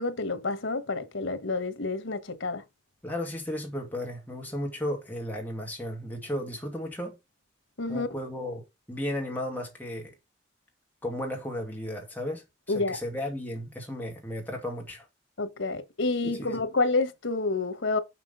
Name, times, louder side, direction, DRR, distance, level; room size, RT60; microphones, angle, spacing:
voice 1, 0.0-2.6 7.8-8.1 12.7-13.0 15.4-18.0, left 3 dB, 85° left, 1.4 m, -29 dB
voice 2, 3.0-7.2 7.9-8.6 8.9-10.1 11.0-12.4 12.7-15.1 16.2-16.6, left 1 dB, 10° left, 2.3 m, -34 dB
6.1 x 5.8 x 5.6 m
head